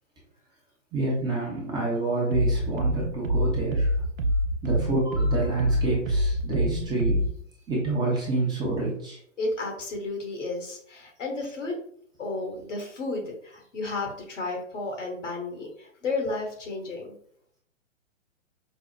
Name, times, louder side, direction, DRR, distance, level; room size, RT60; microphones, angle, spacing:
voice 1, 0.9-3.9 4.6-7.3 7.7-9.2, right 2 dB, 10° right, -4 dB, 0.7 m, -28 dB
sound 1, 2.3-7.3, equal, 90° right, 0.6 m, -26 dB
voice 2, 9.4-11.8 12.2-17.2, left 3 dB, 70° left, 1 dB, 1.4 m, -32 dB
5.2 x 2.0 x 2.4 m, 0.64 s
figure-of-eight pair, 125°, 39 cm